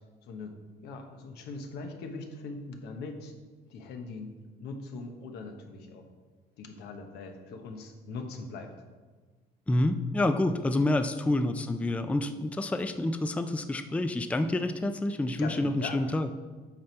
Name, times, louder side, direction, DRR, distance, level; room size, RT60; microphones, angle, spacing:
voice 1, 0.2-0.5 0.8-3.3 3.7-4.3 4.6-6.1 6.6-8.7 15.4-16.0, left 3 dB, 80° left, 4 dB, 1.1 m, -41 dB
voice 2, 9.7-16.3, left 1 dB, 10° left, 8 dB, 0.4 m, -28 dB
8.8 x 5.3 x 4.5 m, 1.4 s
cardioid pair, 110°, 17 cm